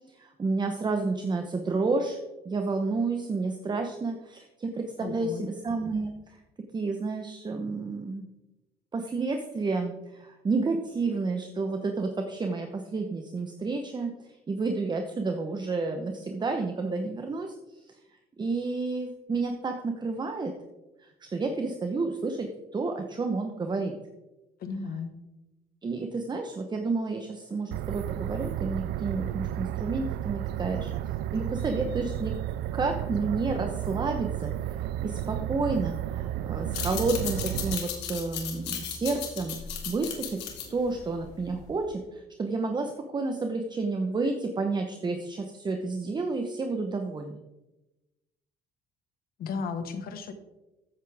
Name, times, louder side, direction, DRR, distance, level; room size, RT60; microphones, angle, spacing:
voice 1, 0.2-2.2 2.4-6.1 6.7-8.3 8.9-14.1 14.5-17.5 18.4-20.5 21.2-23.9 25.8-30.9 31.3-32.3 32.7-39.6 39.9-40.4 40.7-47.4, right 3 dB, 25° right, 4 dB, 1.0 m, -30 dB
voice 2, 5.0-5.5 24.6-25.1 49.4-50.3, left 5 dB, 60° left, 8 dB, 1.5 m, -34 dB
sound 1, 27.7-37.8, right 12 dB, 80° right, 0.4 m, -32 dB
sound 2, 36.6-41.8, left 8 dB, 85° left, 2.4 m, -36 dB
14.0 x 8.3 x 3.5 m, 1.0 s
cardioid pair, 110°, 17 cm